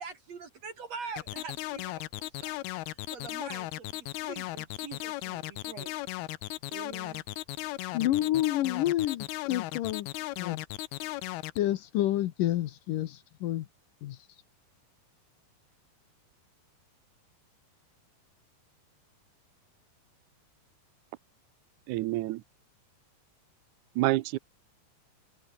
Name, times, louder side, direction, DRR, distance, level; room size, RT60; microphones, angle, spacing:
voice 1, 0.0-2.6 2.9-5.9 6.7-7.2 8.2-8.3, right 5 dB, 50° right, 3.0 m, -44 dB
sound 1, 1.2-11.6, left 18 dB, 85° left, 2.8 m, -36 dB
voice 2, 7.9-10.1 10.4-10.6 11.6-13.7 14.0-14.2, left 14 dB, 70° left, 2.4 m, -29 dB
voice 3, 21.9-22.4 24.0-24.4, right 18 dB, 85° right, 1.7 m, -28 dB
omnidirectional pair, 4.3 m